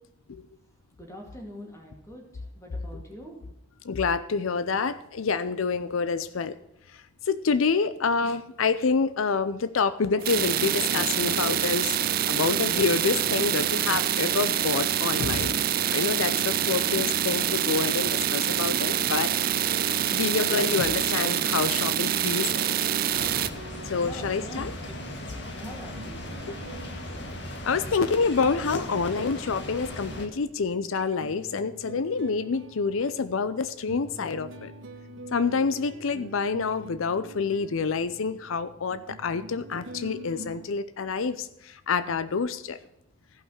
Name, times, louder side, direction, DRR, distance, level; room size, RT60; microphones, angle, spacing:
voice 1, 1.0-3.6 24.0-24.9 25.4-26.6, equal, 15° left, 0 dB, 2.5 m, -45 dB
voice 2, 3.8-6.6 6.9-12.0 12.3-15.5 15.9-19.3 20.1-22.7 23.9-24.7 26.5-26.6 27.6-34.7 35.3-42.8, left 5 dB, 85° left, 14 dB, 0.5 m, -27 dB
sound 1, 10.2-23.5, right 10 dB, 45° right, 0.5 m, -26 dB
sound 2, 23.1-30.3, left 1 dB, 60° left, 1.8 m, -38 dB
sound 3, 23.1-40.7, right 1 dB, 70° right, 1.4 m, -46 dB
15.0 x 5.6 x 6.4 m, 0.83 s
head